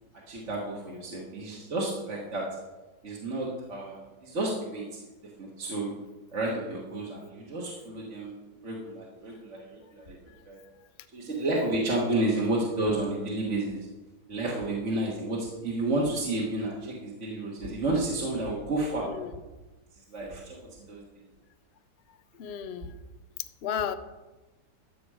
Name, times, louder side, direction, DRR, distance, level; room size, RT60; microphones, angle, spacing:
voice 1, 0.3-2.4 3.0-4.8 5.4-5.9 6.3-8.3 8.6-10.2 10.4-10.6 11.1-13.9 14.3-19.1 20.1-20.6 20.9-21.0, right 2 dB, 45° right, -4 dB, 1.7 m, -31 dB
voice 2, 12.3-12.6 19.0-19.4 22.1-22.9 23.6-23.9, left 8 dB, 80° left, 11 dB, 0.5 m, -35 dB
13.0 x 6.9 x 4.8 m, 1.1 s
omnidirectional pair, 1.9 m